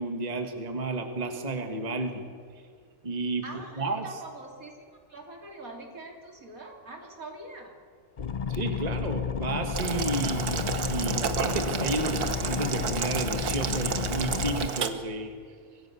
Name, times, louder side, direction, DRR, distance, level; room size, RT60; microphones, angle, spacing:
voice 1, 0.0-2.2 3.0-3.4 3.8-4.1 8.5-15.3, right 2 dB, 30° right, 5 dB, 1.5 m, -32 dB
voice 2, 3.4-7.8, right 2 dB, 65° right, 2 dB, 3.5 m, -44 dB
sound 1, 8.2-14.7, left 6 dB, 40° left, 0.5 m, -32 dB
Boiling, 9.7-14.9, right 6 dB, 90° right, 1.8 m, -31 dB
25.0 x 17.0 x 7.0 m, 2.2 s
omnidirectional pair, 1.6 m